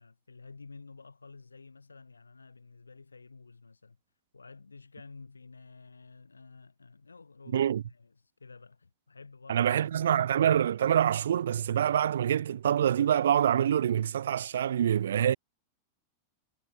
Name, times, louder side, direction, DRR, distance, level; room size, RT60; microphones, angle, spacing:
voice 1, 0.0-4.0 4.3-9.7 10.0-10.2, left 4 dB, 80° left, 3.7 m, -51 dB
voice 2, 7.5-7.8 9.5-15.4, right 9 dB, 65° right, 0.5 m, -26 dB
figure-of-eight pair, 90°, 0 cm